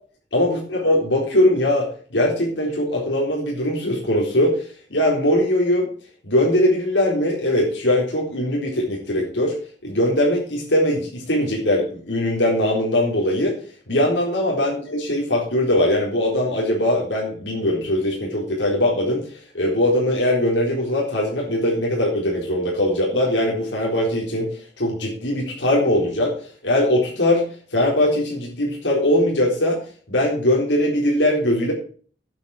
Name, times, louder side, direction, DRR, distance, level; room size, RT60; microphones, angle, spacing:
voice 1, 0.3-4.6 4.9-5.9 6.2-9.5 9.8-13.6 13.9-19.2 19.5-24.5 24.8-27.4 27.7-29.8 30.1-31.7, left 1 dB, 90° left, -3 dB, 4.1 m, -21 dB
9.6 x 8.5 x 6.4 m, 0.43 s
head